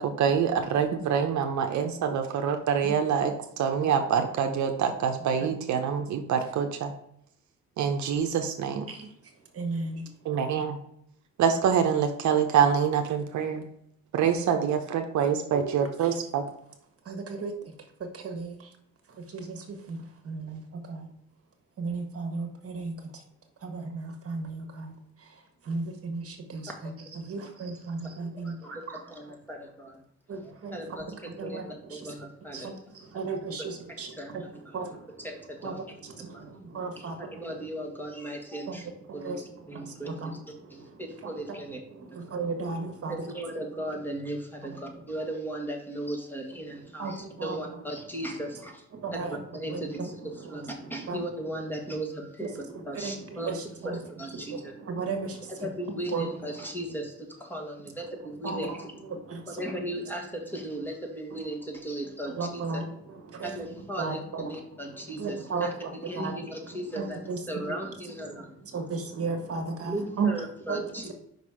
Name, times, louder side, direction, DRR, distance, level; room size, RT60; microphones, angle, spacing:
voice 1, 0.0-3.3 3.6-6.9 7.8-8.9 10.3-10.8 11.4-13.7 14.1-16.4, right 7 dB, 70° right, 0.8 m, -25 dB
voice 2, 8.9-10.0 15.5-16.2 17.0-17.7 18.0-18.7 19.1-21.1 21.8-23.2 23.6-29.0 30.3-32.1 32.5-35.3 35.6-37.4 38.7-43.3 43.9-44.0 47.0-47.8 48.3-48.6 48.9-51.2 52.4-54.0 54.3-56.6 58.4-58.8 59.1-60.0 62.3-67.8 68.2-70.3 70.7-70.8, right 4 dB, 50° right, 1.3 m, -36 dB
voice 3, 28.4-30.0 30.7-32.7 33.6-33.7 34.1-34.4 35.2-35.8 36.3-36.4 37.0-38.8 39.1-40.4 40.7-41.8 42.1-42.2 43.1-48.8 49.5-53.5 54.2-54.7 55.6-58.9 59.5-62.8 63.4-65.7 66.1-68.5 69.8-71.1, right 1 dB, 5° left, 1.5 m, -37 dB
5.5 x 4.0 x 4.9 m
cardioid pair, 90°, 30 cm